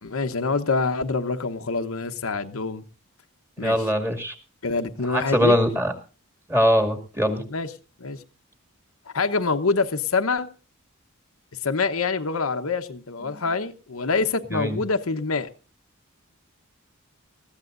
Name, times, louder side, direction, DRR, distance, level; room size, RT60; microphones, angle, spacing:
voice 1, 0.0-2.8 3.6-3.8 4.6-5.6 7.5-7.7 8.0-8.2 9.1-10.5 11.6-15.5, left 4 dB, 75° left, 7 dB, 1.0 m, -25 dB
voice 2, 3.6-4.3 5.1-5.9 6.5-7.4 14.5-14.8, equal, 10° right, 5 dB, 2.3 m, -22 dB
20.0 x 15.0 x 2.6 m, 0.35 s
head